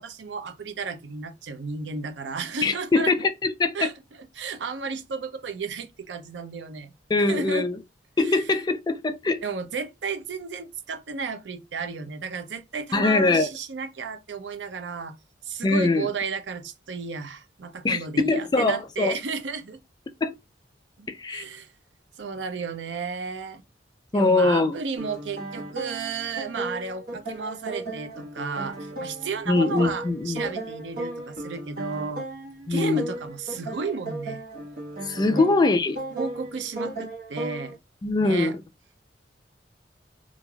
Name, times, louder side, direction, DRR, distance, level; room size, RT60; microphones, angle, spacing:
voice 1, 0.0-3.3 3.7-3.9 4.3-6.9 7.3-7.7 8.2-8.4 9.4-15.1 15.4-19.8 21.0-21.7 22.2-23.6 24.1-32.3 32.7-34.4 35.3-35.4 36.1-37.8 38.2-38.5, right 4 dB, 80° right, 0.5 m, -33 dB
voice 2, 2.6-3.9 7.1-7.8 8.2-9.4 12.9-13.5 15.6-16.1 17.8-19.1 20.2-20.3 21.1-21.5 24.1-24.8 29.5-30.4 32.7-33.1 35.0-36.0 38.0-38.6, left 3 dB, 25° left, 0.4 m, -22 dB
sound 1, 25.0-37.8, right 2 dB, 60° right, 1.1 m, -36 dB
3.1 x 2.5 x 2.2 m
head